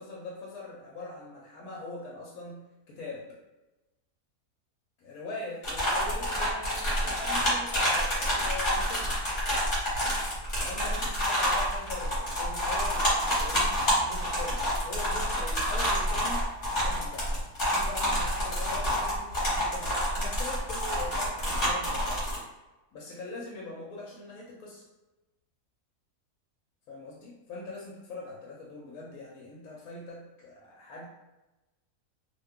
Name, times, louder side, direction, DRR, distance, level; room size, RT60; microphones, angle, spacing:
voice 1, 0.0-3.3 5.0-9.2 10.6-13.7 14.0-17.4 17.7-22.5 22.9-24.8 26.9-31.1, left 3 dB, 70° left, -3 dB, 1.0 m, -42 dB
sound 1, 5.6-22.4, equal, 35° left, 1.1 m, -28 dB
2.7 x 2.2 x 3.5 m, 1.0 s
omnidirectional pair, 1.6 m